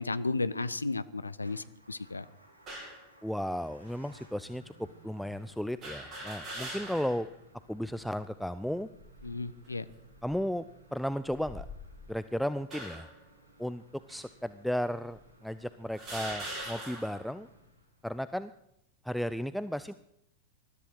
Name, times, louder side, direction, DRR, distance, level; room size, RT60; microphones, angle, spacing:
voice 1, 0.0-2.2 9.2-9.8, left 3 dB, 80° left, 15 dB, 0.7 m, -34 dB
Motor vehicle (road) / Engine starting / Idling, 1.4-18.3, right 1 dB, 80° right, 4.8 m, -59 dB
sound 1, 2.7-3.0 3.9-4.0 5.8-7.3 7.7-7.8 8.9-9.4 10.1-10.3 11.3-12.1 12.7-13.2 14.1-14.2 15.1-15.2 15.9-17.3, right 1 dB, 30° right, 7.5 m, -42 dB
voice 2, 3.2-4.7 5.0-7.3 7.7-8.9 10.2-10.7 10.9-11.7 12.1-13.1 13.6-13.8 14.1-17.5 18.0-18.5 19.0-19.9, equal, ahead, 13 dB, 0.5 m, -34 dB
20.5 x 13.0 x 4.8 m, 0.79 s
figure-of-eight pair, 90°, 0 cm